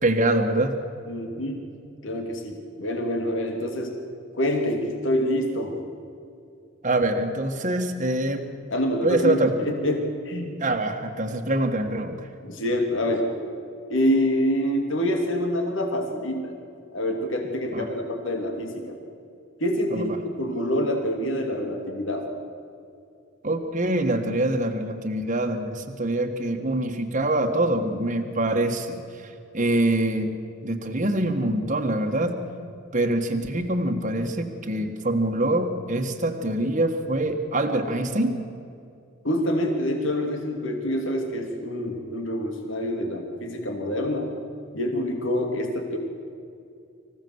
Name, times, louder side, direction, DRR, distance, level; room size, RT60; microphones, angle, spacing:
voice 1, 0.0-0.8 6.8-8.5 9.0-9.5 10.6-12.2 17.7-17.9 19.9-20.2 23.4-30.3 30.6-32.4 32.9-38.4, right 1 dB, 35° right, 3 dB, 1.7 m, -25 dB
voice 2, 1.1-1.6 2.0-3.9 4.4-5.8 8.7-10.6 12.4-13.2 13.9-16.5 16.9-19.0 19.6-22.3 39.2-44.3 44.7-46.0, equal, 65° left, 3 dB, 2.9 m, -26 dB
25.5 x 16.5 x 8.0 m, 2.5 s
head